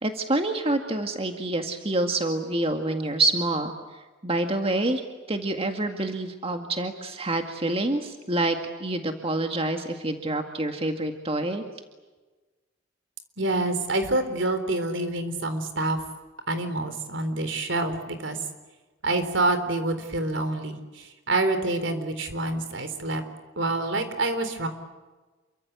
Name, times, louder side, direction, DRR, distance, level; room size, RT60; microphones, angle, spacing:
voice 1, 0.0-3.7 4.2-5.0 5.3-11.6, right 2 dB, 30° right, 4 dB, 2.0 m, -27 dB
voice 2, 13.4-16.0 16.5-18.4 19.0-23.2 23.6-24.7, right 2 dB, 70° right, 9 dB, 4.0 m, -27 dB
28.5 x 24.5 x 8.3 m, 1.2 s
head